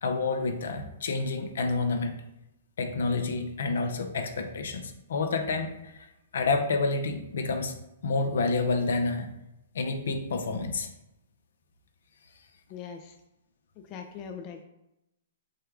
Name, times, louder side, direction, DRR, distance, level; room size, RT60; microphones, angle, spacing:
voice 1, 0.0-2.2 2.8-5.9 6.3-7.7 8.0-9.3 9.7-10.9, left 3 dB, 70° left, 6 dB, 0.7 m, -29 dB
voice 2, 12.7-13.2 13.8-14.6, left 7 dB, 35° left, 5 dB, 0.4 m, -41 dB
6.4 x 2.3 x 3.6 m, 0.88 s
hypercardioid pair, 125°, 0 cm